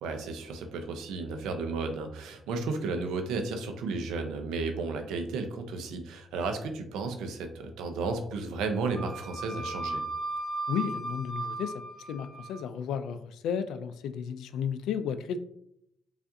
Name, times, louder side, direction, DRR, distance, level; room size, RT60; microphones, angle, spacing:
voice 1, 0.0-10.0, right 3 dB, 90° right, 6 dB, 0.5 m, -33 dB
Wind instrument woodwind instrument, 9.0-12.6, right 2 dB, 5° left, 1.5 m, -36 dB
voice 2, 10.7-15.4, left 7 dB, 80° left, 10 dB, 0.3 m, -33 dB
4.9 x 2.5 x 2.6 m, 0.74 s
cardioid pair, 90°, 0 cm